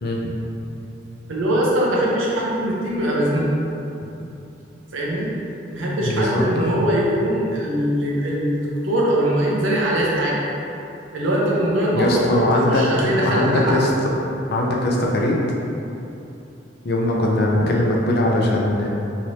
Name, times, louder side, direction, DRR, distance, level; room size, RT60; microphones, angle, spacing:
voice 1, 1.3-3.5 4.9-5.3 5.7-10.4 11.1-12.1 12.3-13.8, right 1 dB, 90° right, -5 dB, 0.7 m, -21 dB
voice 2, 6.0-6.7 11.9-13.9 14.5-15.4 16.8-18.9, left 1 dB, 55° left, -2 dB, 0.5 m, -20 dB
3.1 x 3.0 x 2.6 m, 2.8 s
head